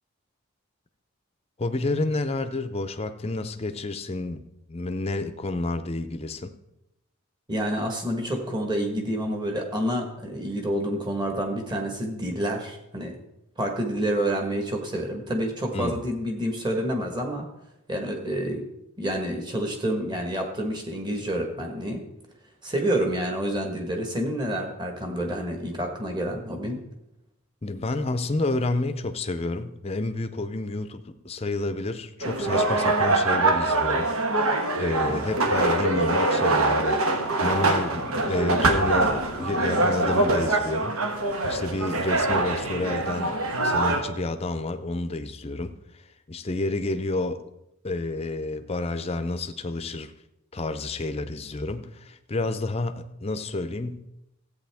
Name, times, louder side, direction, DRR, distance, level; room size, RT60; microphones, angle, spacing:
voice 1, 1.6-4.4 4.7-6.5 15.7-16.0 27.6-41.0 41.4-45.7 46.3-47.4 47.8-50.1 50.5-54.1, left 2 dB, 25° left, 9 dB, 0.5 m, -30 dB
voice 2, 7.5-13.2 13.6-17.4 17.9-18.6 19.0-22.0 22.6-26.8 35.0-35.2, right 1 dB, 20° right, 3 dB, 1.4 m, -28 dB
sound 1, 32.2-44.0, right 2 dB, 85° right, 1.3 m, -24 dB
14.0 x 8.5 x 3.5 m, 0.86 s
head